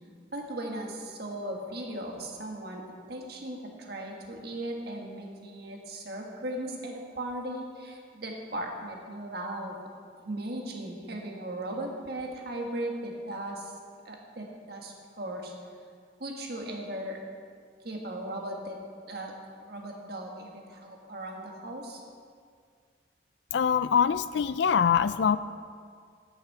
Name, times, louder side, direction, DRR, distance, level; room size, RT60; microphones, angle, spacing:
voice 1, 0.3-9.8 10.2-13.7 14.0-15.5 16.2-17.2 17.8-18.8 19.1-19.3 19.6-22.0, right 1 dB, 55° right, 0 dB, 1.7 m, -37 dB
voice 2, 23.5-25.4, left 7 dB, 65° left, 15 dB, 0.4 m, -24 dB
9.4 x 8.5 x 6.8 m, 2.1 s
head